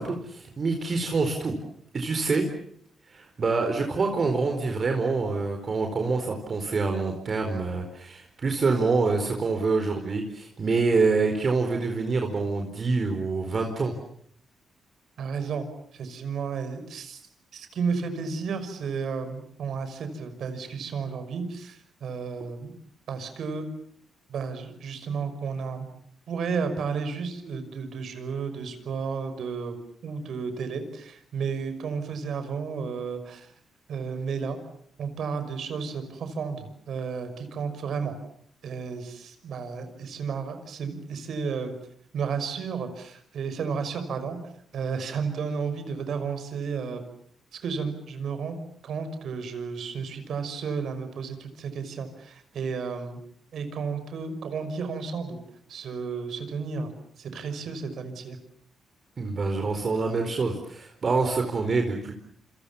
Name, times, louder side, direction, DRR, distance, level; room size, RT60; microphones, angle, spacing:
voice 1, 0.0-1.6 1.9-2.4 3.1-13.9 59.2-62.1, right 4 dB, 45° right, 4 dB, 4.5 m, -26 dB
voice 2, 15.2-17.2 17.5-22.7 23.1-23.7 24.3-25.9 26.3-29.7 30.0-33.5 33.9-34.6 35.0-38.1 38.6-41.7 42.1-44.4 44.7-47.0 47.6-53.2 53.5-55.4 55.7-56.9 57.2-58.4, right 5 dB, 70° right, 9 dB, 5.9 m, -32 dB
28.5 x 27.0 x 7.2 m, 0.65 s
cardioid pair, 90°, 0 cm